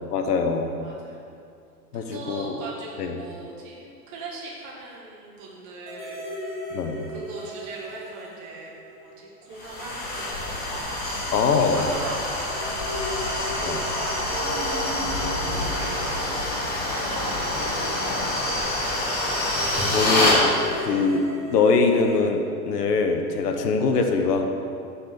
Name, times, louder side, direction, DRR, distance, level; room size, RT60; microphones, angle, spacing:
voice 1, 0.1-0.7 1.9-2.6 3.0-3.1 6.7-7.0 11.3-11.9 13.6-13.8 19.6-24.5, left 4 dB, 85° left, 5 dB, 0.9 m, -23 dB
voice 2, 0.8-1.2 1.9-6.5 7.1-8.7 9.0-10.8 11.5-18.7, right 3 dB, 40° right, -4 dB, 1.6 m, -41 dB
sound 1, 5.8-9.6 9.9-10.0 12.4-17.9 20.2-22.2, equal, 20° right, 1.6 m, -36 dB
sound 2, 9.6-20.4, left 1 dB, 20° left, 1.5 m, -26 dB
sound 3, 10.3-18.3, left 3 dB, 55° left, 1.1 m, -41 dB
6.7 x 4.1 x 5.9 m, 2.4 s
hypercardioid pair, 130°, 46 cm